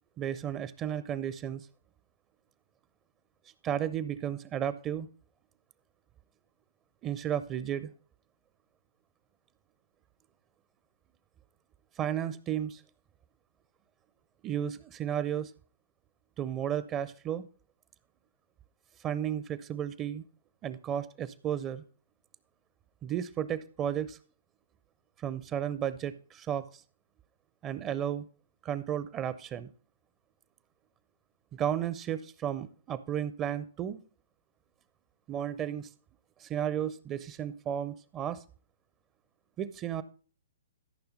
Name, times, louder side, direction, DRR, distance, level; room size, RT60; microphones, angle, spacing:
voice 1, 0.2-1.7 3.6-5.1 7.0-7.9 12.0-12.8 14.4-15.5 16.4-17.5 19.0-20.2 20.6-21.8 23.0-24.2 25.2-26.7 27.6-28.3 28.6-29.7 31.5-34.0 35.3-35.9 36.4-38.4 39.6-40.0, right 10 dB, 25° right, 16 dB, 0.5 m, -33 dB
13.5 x 5.7 x 3.9 m, 0.41 s
figure-of-eight pair, 120°, 0 cm